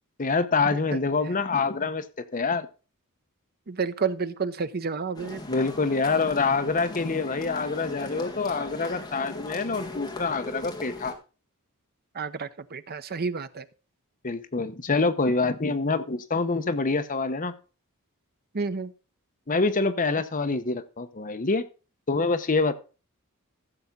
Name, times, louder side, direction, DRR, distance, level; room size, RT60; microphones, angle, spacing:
voice 1, 0.2-2.0 2.3-2.7 5.5-11.2 14.2-17.5 19.5-21.6 22.1-22.7, left 4 dB, 40° left, 0.9 m, -26 dB
voice 2, 3.7-5.4 12.1-13.6 18.5-18.9, right 5 dB, 45° right, 0.7 m, -30 dB
sound 1, 5.1-11.1, left 1 dB, 20° left, 1.8 m, -39 dB
15.0 x 7.1 x 3.8 m
head